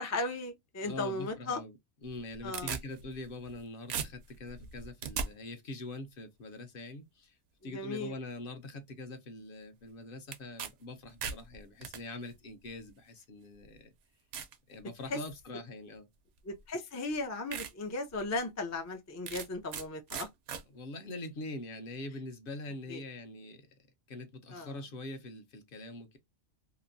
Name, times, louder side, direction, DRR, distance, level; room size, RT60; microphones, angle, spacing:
voice 1, 0.0-1.6 2.4-2.7 7.7-8.1 15.1-15.2 16.4-20.3 22.9-23.0 24.5-24.7, left 2 dB, 25° left, 0.3 m, -36 dB
voice 2, 0.8-1.8 2.0-7.4 7.6-13.9 14.7-16.1 20.7-23.8 24.1-26.2, left 2 dB, 55° left, 0.8 m, -43 dB
sound 1, 2.1-3.6 3.9-5.3 10.3-10.7 11.0-12.0 12.9-13.0 13.6-13.7 14.3-14.6 15.1-15.4 16.6-16.7 17.1-17.2 17.5-17.7 18.1-18.2 19.3-19.8 20.1-20.6, right 7 dB, 70° right, 0.8 m, -38 dB
2.9 x 2.5 x 2.5 m
omnidirectional pair, 1.2 m